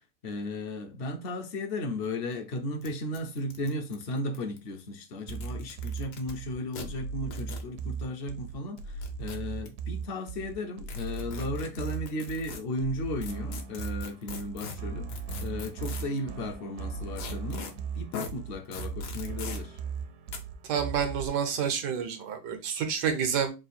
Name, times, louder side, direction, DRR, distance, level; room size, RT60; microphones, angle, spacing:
voice 1, 0.2-15.1 15.4-19.8, left 1 dB, 55° left, 0.6 m, -35 dB
sound 1, 2.0-2.1 2.3-2.4 2.8-2.9 3.1-4.6 5.2-6.3 6.7-6.9 7.3-7.7 8.8-9.7 10.9-12.6 13.2-16.2 17.2-17.7 18.1-18.3 18.7-19.6 20.3-20.4, left 6 dB, 75° left, 1.4 m, -41 dB
sound 2, 5.3-21.3, right 5 dB, 75° right, 1.1 m, -38 dB
voice 2, 20.7-23.5, right 7 dB, 90° right, 1.5 m, -29 dB
3.6 x 2.5 x 4.1 m
omnidirectional pair, 1.8 m